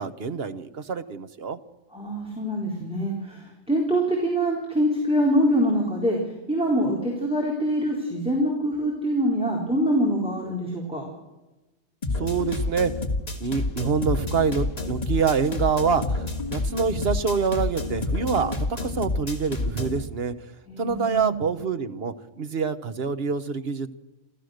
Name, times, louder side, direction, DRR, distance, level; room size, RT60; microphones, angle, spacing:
voice 1, 0.0-1.6 12.2-12.9 13.4-20.3 20.8-23.9, right 5 dB, 50° right, 10 dB, 1.3 m, -26 dB
voice 2, 1.9-6.2 6.5-11.0 20.7-21.4, equal, 5° right, -2 dB, 4.1 m, -24 dB
sound 1, 12.0-20.0, left 2 dB, 30° left, 2.1 m, -29 dB
29.5 x 13.5 x 6.6 m, 1.1 s
omnidirectional pair, 1.4 m